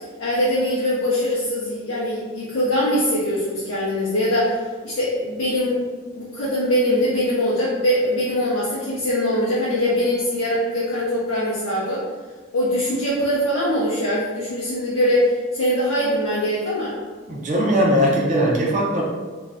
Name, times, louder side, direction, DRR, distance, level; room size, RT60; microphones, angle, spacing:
voice 1, 0.2-5.8 6.1-12.0 12.5-17.0, equal, 80° left, -8 dB, 0.6 m, -22 dB
voice 2, 17.3-19.0, equal, 40° right, -3 dB, 0.5 m, -19 dB
2.5 x 2.2 x 3.3 m, 1.4 s
head